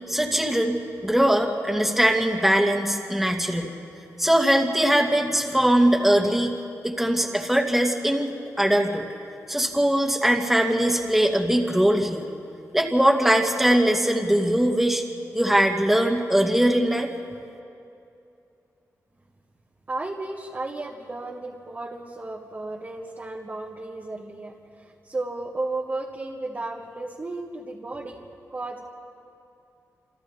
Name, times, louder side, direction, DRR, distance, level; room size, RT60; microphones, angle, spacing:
voice 1, 0.1-3.7 4.2-6.5 6.8-9.0 9.5-12.3 12.7-15.0 15.3-17.1, right 1 dB, 5° right, 1 dB, 2.2 m, -21 dB
voice 2, 19.9-28.2 28.5-28.8, right 2 dB, 30° right, -3 dB, 1.9 m, -34 dB
28.5 x 28.0 x 3.6 m, 2.6 s
wide cardioid pair, 95°, 6 cm